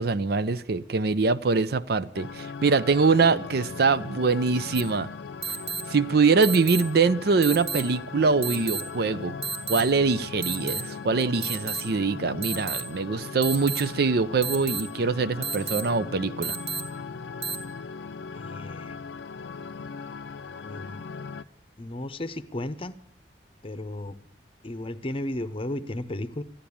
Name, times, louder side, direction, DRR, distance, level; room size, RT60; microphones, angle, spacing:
voice 1, 0.0-5.1 5.9-9.3 9.7-16.6, right 4 dB, 65° right, 0.6 m, -23 dB
sound 1, 2.1-21.4, left 5 dB, 90° left, 0.5 m, -39 dB
sound 2, 4.7-4.8 5.4-5.8 6.4-6.8 7.4-7.8 8.4-8.8 9.4-9.8 10.4-10.8 11.4-11.8 12.4-12.8 13.4-13.8 14.4-14.8 15.4-15.8 16.4-16.8 17.4-17.5, right 5 dB, 40° right, 1.6 m, -30 dB
voice 2, 18.3-19.0 20.6-21.0 21.8-23.0 23.6-24.2 24.6-26.4, left 1 dB, 30° left, 0.7 m, -34 dB
14.0 x 10.0 x 8.5 m
head